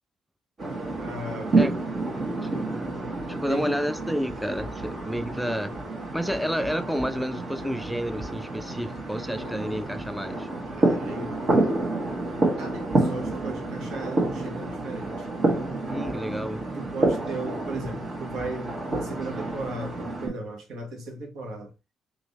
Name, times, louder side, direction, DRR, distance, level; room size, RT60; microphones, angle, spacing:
sound 1, 0.6-20.3, right 2 dB, 40° right, 1.5 m, -29 dB
voice 1, 1.0-1.6 3.5-3.8 10.7-11.8 12.6-15.3 16.7-21.7, right 2 dB, 80° right, 1.4 m, -36 dB
voice 2, 1.5-5.7 6.1-10.5 15.8-16.6, equal, ahead, 0.4 m, -31 dB
3.7 x 2.9 x 4.1 m
cardioid pair, 90°, 0 cm